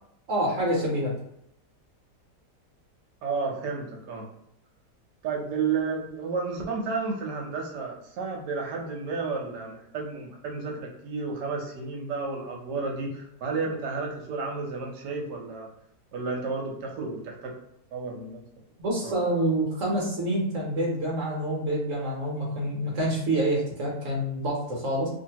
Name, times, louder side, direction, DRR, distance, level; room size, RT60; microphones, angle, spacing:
voice 1, 0.3-1.2 18.8-25.1, right 1 dB, 55° right, -3 dB, 1.1 m, -27 dB
voice 2, 3.2-4.3 5.2-15.7 16.1-17.5 17.9-18.4 19.0-19.1, right 4 dB, 80° right, 0 dB, 1.3 m, -32 dB
2.8 x 2.6 x 2.8 m, 0.78 s
omnidirectional pair, 1.8 m